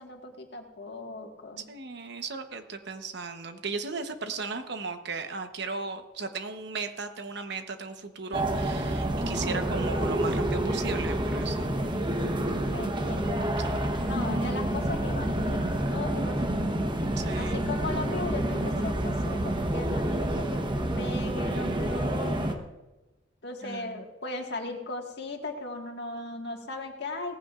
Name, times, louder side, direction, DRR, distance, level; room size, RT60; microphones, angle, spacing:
voice 1, 0.0-1.7 12.7-13.4 14.1-15.6 15.9-16.8 17.4-20.6 21.0-22.6 23.4-27.4, left 2 dB, 60° left, 2 dB, 1.8 m, -37 dB
voice 2, 1.6-12.0 17.0-17.7 23.6-24.1, right 4 dB, 60° right, 7 dB, 1.0 m, -36 dB
sound 1, 8.3-22.5, right 1 dB, 25° right, 1.0 m, -28 dB
18.0 x 15.0 x 2.5 m, 1.1 s
head